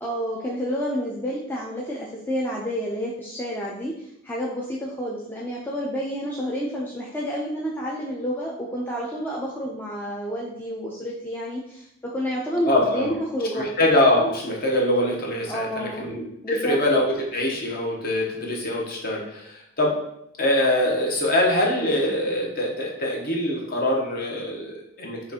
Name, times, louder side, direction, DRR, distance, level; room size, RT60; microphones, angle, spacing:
voice 1, 0.0-13.7 15.5-16.1 16.4-16.8, equal, 10° left, -5 dB, 0.3 m, -29 dB
voice 2, 12.6-13.2 13.5-20.0 20.4-25.3, left 1 dB, 45° left, -2 dB, 0.8 m, -23 dB
5.8 x 2.4 x 2.7 m, 0.78 s
head